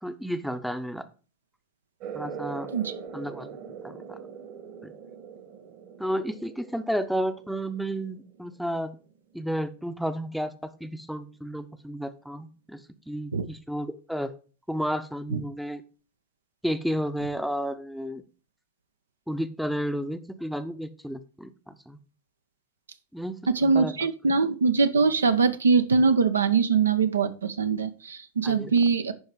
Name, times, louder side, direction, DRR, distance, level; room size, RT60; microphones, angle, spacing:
voice 1, 0.0-1.1 2.1-2.7 3.1-3.6 3.8-4.2 4.8-4.9 6.0-8.9 9.3-12.8 13.1-14.3 14.7-15.8 16.6-18.2 19.3-22.0 23.1-23.9 28.4-28.7, equal, ahead, 11 dB, 0.7 m, -32 dB
sound 1, 2.0-9.2, right 7 dB, 45° right, 1.4 m, -42 dB
voice 2, 23.5-29.1, right 5 dB, 70° right, 10 dB, 0.6 m, -22 dB
11.0 x 4.8 x 4.6 m, 0.37 s
figure-of-eight pair, 90°, 0 cm